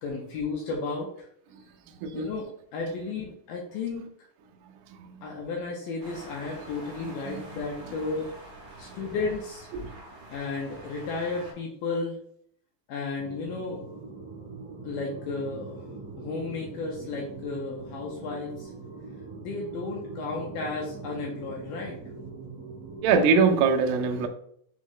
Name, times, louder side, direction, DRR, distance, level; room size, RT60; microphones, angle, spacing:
voice 1, 0.0-1.3 2.1-4.1 5.2-8.3 8.8-9.7 10.3-12.2 12.9-13.8 14.8-15.9 16.2-18.7 19.4-22.0, left 3 dB, 80° left, 2.1 m, -33 dB
sound 1, 6.0-11.5, right 2 dB, 60° right, 2.2 m, -46 dB
sound 2, 13.2-23.1, right 3 dB, 40° right, 1.1 m, -42 dB
voice 2, 23.0-24.3, right 5 dB, 80° right, 2.2 m, -22 dB
6.1 x 2.2 x 3.7 m
omnidirectional pair, 4.5 m